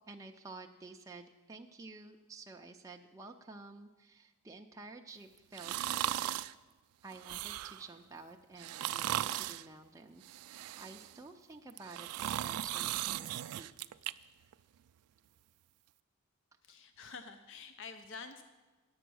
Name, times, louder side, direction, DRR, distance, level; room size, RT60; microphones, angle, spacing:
voice 1, 0.1-6.5 7.0-13.7, right 3 dB, 15° right, 2 dB, 0.4 m, -51 dB
sound 1, 5.5-6.5 7.1-7.9 8.6-9.6 10.2-11.2 11.7-14.1 14.5-14.6, right 13 dB, 85° right, 0.3 m, -37 dB
voice 2, 16.6-18.4, left 5 dB, 60° left, 8 dB, 0.6 m, -48 dB
10.0 x 7.8 x 6.2 m, 1.3 s
head